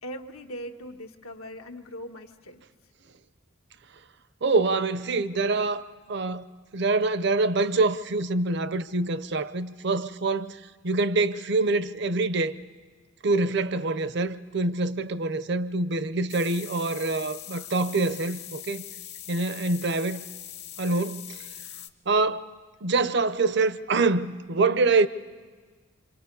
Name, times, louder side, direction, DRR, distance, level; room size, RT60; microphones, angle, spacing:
voice 1, 0.0-2.6, equal, 90° left, 1.5 m, -40 dB
voice 2, 4.4-6.5 6.7-12.6 13.2-18.8 19.3-20.2 20.8-21.5 22.1-22.5 22.8-25.1, right 3 dB, 55° right, 0.6 m, -25 dB
sound 1, 16.3-21.9, left 11 dB, 50° left, 1.0 m, -42 dB
28.0 x 26.0 x 5.4 m
head